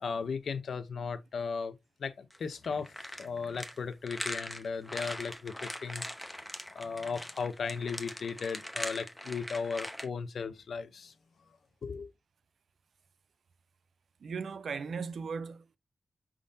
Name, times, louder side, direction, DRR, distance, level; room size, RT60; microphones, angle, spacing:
voice 1, 0.0-6.0 6.7-11.1 11.8-12.1, left 5 dB, 70° left, 0.6 m, -36 dB
sound 1, 2.3-10.1, equal, 5° left, 0.5 m, -41 dB
voice 2, 14.2-15.8, right 5 dB, 70° right, 0.4 m, -37 dB
5.1 x 3.6 x 2.6 m
wide cardioid pair, 155°, 0 cm